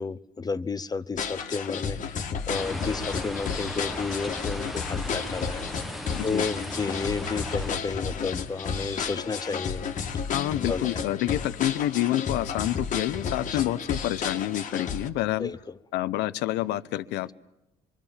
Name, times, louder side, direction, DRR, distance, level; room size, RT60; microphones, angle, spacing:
voice 1, 0.0-5.9 6.2-9.8 10.7-11.0 15.4-15.8, left 4 dB, 25° left, 0.9 m, -32 dB
sound 1, 1.2-15.1, left 6 dB, 45° left, 1.9 m, -32 dB
sound 2, 2.5-7.7, equal, ahead, 1.2 m, -37 dB
voice 2, 10.3-15.5 15.9-17.3, left 14 dB, 85° left, 0.8 m, -28 dB
26.5 x 23.5 x 7.4 m
cardioid pair, 110°, 17 cm